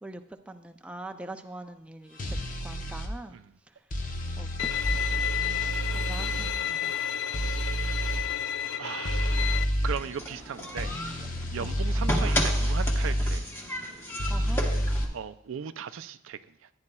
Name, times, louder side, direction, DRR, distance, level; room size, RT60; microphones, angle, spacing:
voice 1, 0.0-2.2 2.6-3.4 3.7-3.8 4.4-5.3 5.9-7.1 11.6-11.7 14.3-14.6, right 2 dB, 5° right, 6 dB, 0.4 m, -43 dB
sound 1, 2.2-3.1 3.9-6.5 7.3-8.2 9.0-10.0 10.8-13.4 14.2-15.0, equal, 45° left, 0.9 m, -29 dB
Bowed string instrument, 4.6-9.6, left 9 dB, 80° left, 0.4 m, -31 dB
voice 2, 7.9-8.4 8.8-9.6 9.8-13.4 15.1-16.4, right 7 dB, 80° right, 12 dB, 0.4 m, -38 dB
sound 2, 9.9-15.1, equal, 10° left, 1.2 m, -34 dB
14.5 x 9.7 x 2.3 m, 0.75 s
head